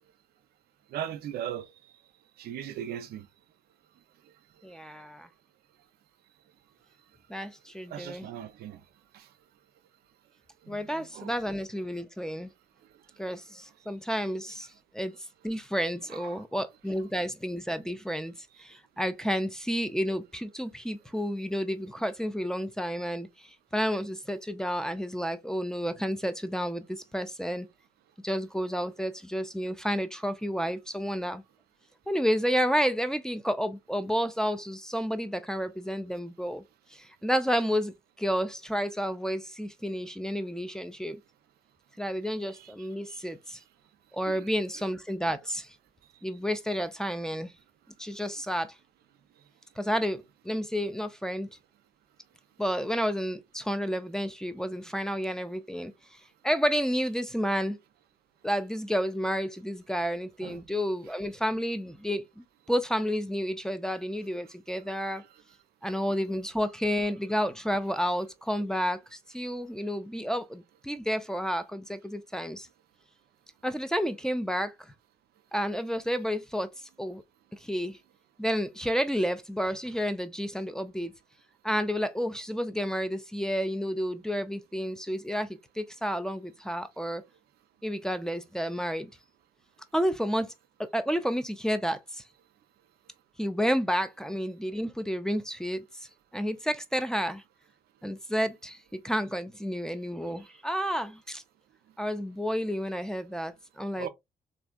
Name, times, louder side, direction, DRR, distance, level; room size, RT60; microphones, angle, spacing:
voice 1, 0.9-1.7 2.4-3.3 7.9-8.8 9.1-9.3 10.7-11.3 16.1-16.4 42.5-42.7 43.1-43.2 44.3-44.5 60.4-60.6 104.0-104.1, right 10 dB, 70° right, 0.5 m, -38 dB
voice 2, 4.6-5.3 7.3-8.3 10.7-12.5 13.2-14.7 14.9-15.1 15.4-18.3 18.6-27.7 28.2-31.4 32.1-36.6 36.9-41.2 42.0-43.6 44.1-45.7 46.2-47.5 48.0-48.7 49.8-51.5 52.6-57.8 58.4-65.2 65.8-72.7 73.6-74.9 75.5-76.7 77.0-77.2 77.5-78.0 78.4-81.1 81.6-85.5 85.8-87.2 87.8-89.1 89.9-90.5 90.8-92.2 93.4-97.4 98.0-101.4 102.0-104.1, equal, 5° left, 0.5 m, -31 dB
3.3 x 2.5 x 2.2 m
hypercardioid pair, 50°, 17 cm